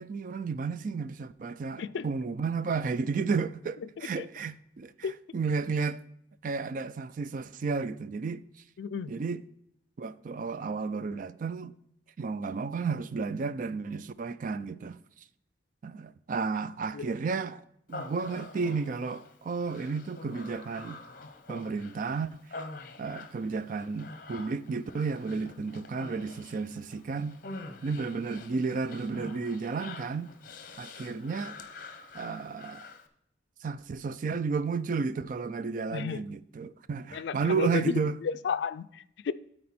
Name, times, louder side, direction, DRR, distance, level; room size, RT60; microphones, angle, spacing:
voice 1, 0.0-6.0 6.4-8.4 9.1-9.4 10.0-11.7 12.2-15.0 15.8-17.6 17.9-21.0 21.5-22.6 23.0-27.4 27.8-30.3 30.8-31.6 32.1-32.8 33.6-38.2, right 4 dB, 45° right, 0.3 m, -32 dB
voice 2, 8.8-9.1 16.9-17.1 35.9-36.2 37.1-39.3, left 6 dB, 70° left, 0.3 m, -33 dB
Human voice, 17.9-33.1, left 3 dB, 50° left, 0.8 m, -46 dB
13.0 x 4.4 x 4.2 m
head